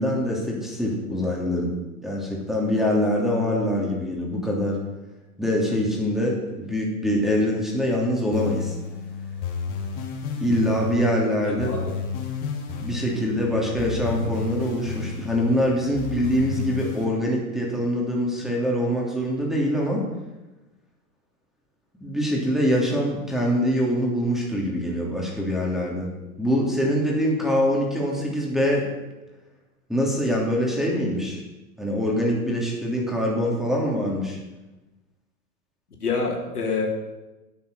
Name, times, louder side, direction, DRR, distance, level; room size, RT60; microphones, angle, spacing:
voice 1, 0.0-1.7 2.0-4.8 5.4-8.8 10.4-11.7 12.8-20.1 22.0-26.1 26.4-28.9 29.9-31.4 31.8-34.4, equal, ahead, -2 dB, 3.1 m, -24 dB
sound 1, 8.3-17.0, left 6 dB, 45° left, 2.9 m, -32 dB
voice 2, 11.4-11.9 36.0-36.9, left 4 dB, 90° left, -1 dB, 3.3 m, -27 dB
9.3 x 9.1 x 6.7 m, 1.1 s
hypercardioid pair, 110°, 44 cm